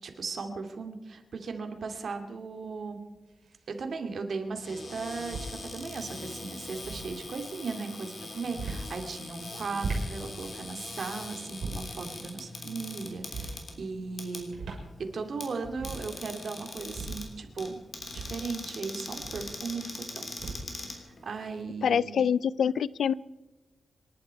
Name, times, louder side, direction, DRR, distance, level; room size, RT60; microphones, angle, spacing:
voice 1, 0.0-3.0 3.7-14.5 15.1-17.8 18.1-20.3 20.9-22.2, right 4 dB, 60° right, 5 dB, 2.3 m, -37 dB
sound 1, 1.8-1.9 3.3-3.8 5.0-5.6 6.6-7.1 8.4-8.9 9.6-10.2 11.5-12.0 13.2-13.6 14.4-14.9 15.2-15.3 15.6-16.1 16.8-17.3 18.0-19.6 20.3-20.8, right 3 dB, 75° right, 5.5 m, -38 dB
Cupboard open or close, 4.5-21.6, left 2 dB, 45° left, 3.4 m, -42 dB
voice 2, 21.8-23.1, left 7 dB, 90° left, 20 dB, 0.4 m, -25 dB
27.5 x 11.5 x 4.6 m, 1.2 s
wide cardioid pair, 140°, 0 cm